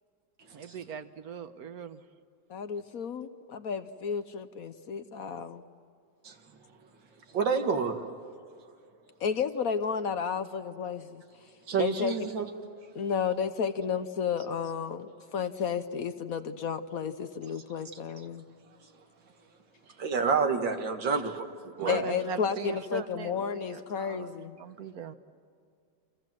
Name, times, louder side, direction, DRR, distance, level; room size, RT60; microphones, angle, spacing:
voice 1, 0.5-2.0 19.8-20.0 21.1-21.2 21.8-25.2, right 7 dB, 55° right, 11 dB, 1.5 m, -41 dB
voice 2, 2.5-5.6 9.2-11.2 11.8-12.1 12.9-18.4 21.9-24.6, left 6 dB, 60° left, 11 dB, 1.2 m, -32 dB
voice 3, 7.3-8.0 11.7-12.5 20.0-22.0, right 5 dB, 85° right, 5 dB, 2.5 m, -28 dB
29.0 x 26.5 x 7.6 m, 2.3 s
omnidirectional pair, 2.0 m